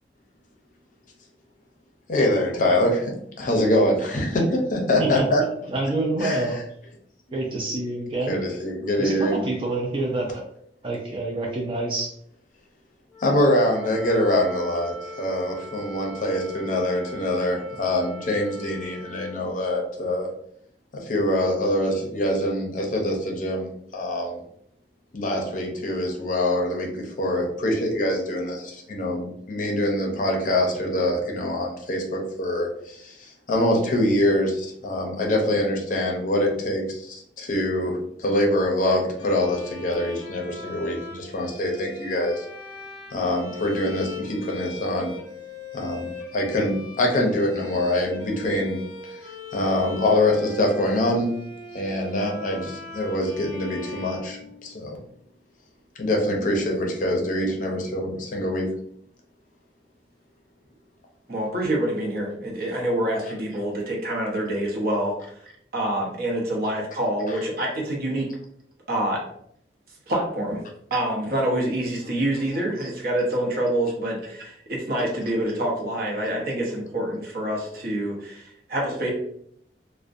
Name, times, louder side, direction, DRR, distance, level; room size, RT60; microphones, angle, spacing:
voice 1, 2.1-5.4 6.2-6.5 8.3-9.4 13.2-20.3 20.9-24.4 25.1-42.4 43.1-45.1 45.7-48.8 49.5-51.3 51.7-55.0 56.0-58.7, left 1 dB, 45° left, 1 dB, 0.5 m, -24 dB
voice 2, 5.7-6.6 7.3-8.4 9.0-10.4 10.8-12.1, right 2 dB, 30° right, -1 dB, 0.3 m, -27 dB
Wind instrument woodwind instrument, 13.1-19.4, equal, ahead, 0.8 m, -40 dB
Bowed string instrument, 39.2-55.0, left 4 dB, 25° left, 0.9 m, -40 dB
voice 3, 61.3-68.3 68.9-69.2 70.1-70.6 70.9-79.1, right 1 dB, 55° right, -1 dB, 0.7 m, -26 dB
2.5 x 2.1 x 2.4 m, 0.68 s
head